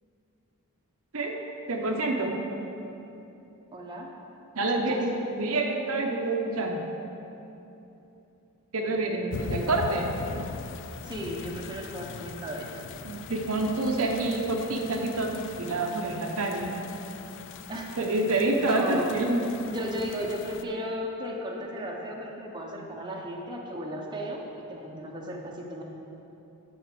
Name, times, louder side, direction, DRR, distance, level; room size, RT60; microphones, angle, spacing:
voice 1, 1.7-2.4 4.5-6.9 8.7-10.1 13.0-16.8 18.0-19.5, right 2 dB, 65° right, 2 dB, 0.8 m, -27 dB
voice 2, 3.7-4.1 4.9-5.0 11.0-12.8 17.7-17.9 18.6-19.1 19.7-24.4 24.7-25.8, equal, 20° right, -1 dB, 0.9 m, -35 dB
sound 1, 9.3-20.6, left 5 dB, 55° left, 0.4 m, -41 dB
10.0 x 4.3 x 7.6 m, 3.0 s
head